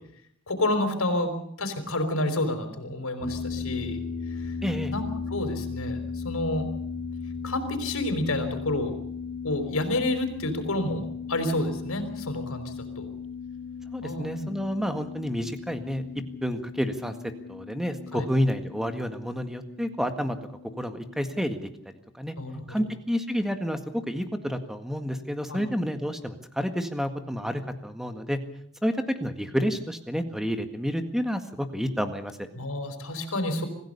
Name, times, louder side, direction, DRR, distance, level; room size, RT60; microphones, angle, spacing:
voice 1, 0.5-4.0 4.4-4.5 4.9-6.7 7.4-8.9 9.4-11.0 11.3-13.1 14.0-14.5 18.1-18.3 22.4-22.9 25.5-25.6 32.5-33.7, left 1 dB, 85° left, 7 dB, 4.8 m, -29 dB
sound 1, 3.2-21.6, left 5 dB, 15° left, 2.5 m, -37 dB
voice 2, 4.6-4.9 13.9-16.0 16.4-17.2 17.5-20.4 20.8-21.6 21.9-22.3 22.7-23.8 24.1-28.4 28.8-32.4, equal, ahead, 7 dB, 1.8 m, -29 dB
26.0 x 15.5 x 6.9 m, 0.66 s
head